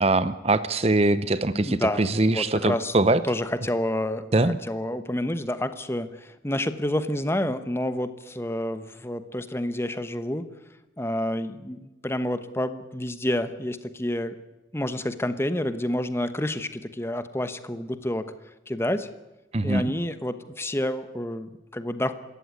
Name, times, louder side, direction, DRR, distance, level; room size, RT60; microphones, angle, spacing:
voice 1, 0.0-3.2 4.3-4.6 19.5-19.9, right 2 dB, 35° right, 14 dB, 0.7 m, -22 dB
voice 2, 1.5-2.9 3.2-10.4 11.0-14.4 14.7-18.3 18.7-19.1 19.6-22.1, left 1 dB, 15° left, 11 dB, 1.0 m, -29 dB
25.5 x 14.5 x 9.6 m, 0.99 s
head